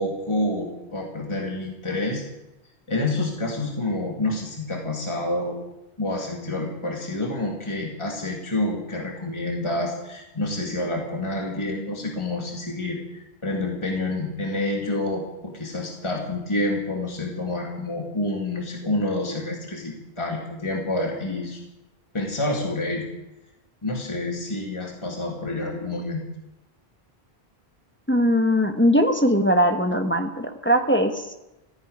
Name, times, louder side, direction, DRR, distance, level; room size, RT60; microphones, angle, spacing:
voice 1, 0.0-2.2 2.9-5.6 6.0-21.6 22.1-23.1 23.8-26.2, left 2 dB, 25° left, 0 dB, 2.2 m, -28 dB
voice 2, 28.1-31.4, equal, 10° left, 5 dB, 1.2 m, -20 dB
15.0 x 10.5 x 9.3 m, 0.95 s
omnidirectional pair, 1.1 m